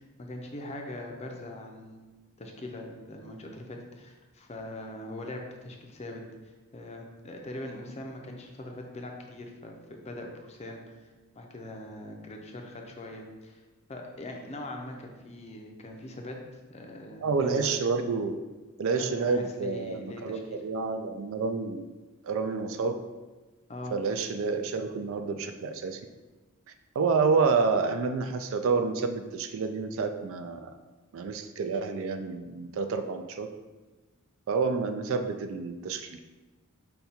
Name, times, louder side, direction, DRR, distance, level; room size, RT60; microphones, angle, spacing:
voice 1, 0.0-2.1 2.4-13.6 13.9-16.4 16.7-17.7 19.0-20.6 23.7-23.9, left 1 dB, 30° left, 2 dB, 0.5 m, -42 dB
voice 2, 17.2-18.4 18.8-21.9 22.2-23.0 23.9-26.0 27.0-30.7 31.1-33.5 34.5-36.2, right 4 dB, 65° right, 7 dB, 0.3 m, -29 dB
5.2 x 2.3 x 4.2 m, 1.2 s
head